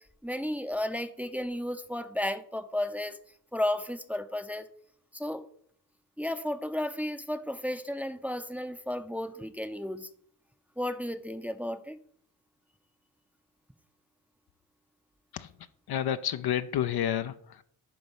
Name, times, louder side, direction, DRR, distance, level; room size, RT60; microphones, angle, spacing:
voice 1, 0.2-3.2 3.5-4.7 5.1-5.5 6.2-10.1 10.8-12.0, left 1 dB, 5° right, 8 dB, 0.7 m, -33 dB
voice 2, 15.3-17.6, left 10 dB, 55° left, 11 dB, 0.6 m, -31 dB
11.0 x 3.9 x 5.5 m, 0.64 s
supercardioid pair, 50°, 47 cm